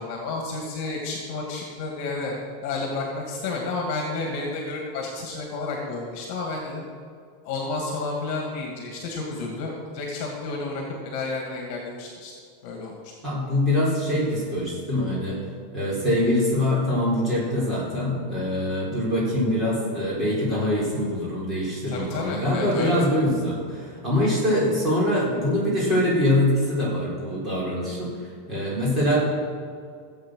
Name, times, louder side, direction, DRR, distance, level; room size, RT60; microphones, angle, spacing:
voice 1, 0.0-2.4 2.6-6.8 7.4-12.3 12.6-12.9 21.9-23.1, left 3 dB, 40° left, 0 dB, 2.3 m, -31 dB
voice 2, 13.2-15.4 15.7-28.1 28.5-29.2, left 1 dB, 15° right, -6 dB, 4.4 m, -24 dB
16.5 x 8.0 x 6.6 m, 2.2 s
supercardioid pair, 175°, 0 cm